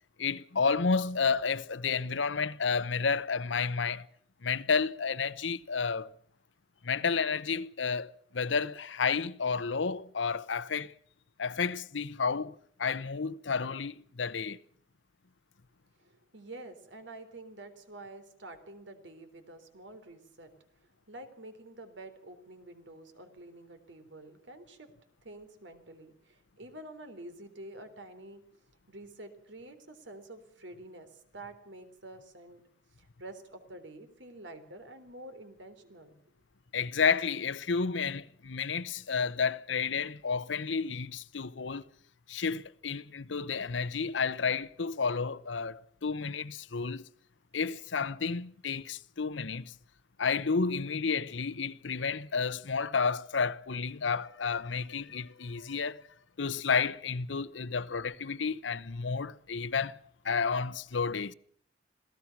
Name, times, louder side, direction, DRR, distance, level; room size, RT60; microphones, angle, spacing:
voice 1, 0.2-4.1 4.4-6.1 6.8-10.9 11.4-14.6 36.7-41.9 42.3-47.0 47.5-49.7 50.2-56.0 56.4-60.0 60.2-61.3, left 5 dB, 80° left, 0.8 m, -31 dB
voice 2, 16.0-20.5 21.1-24.9 25.2-28.4 28.9-31.1 31.3-32.6 33.0-36.2, right 2 dB, 75° right, 3.6 m, -48 dB
27.0 x 17.0 x 6.0 m
head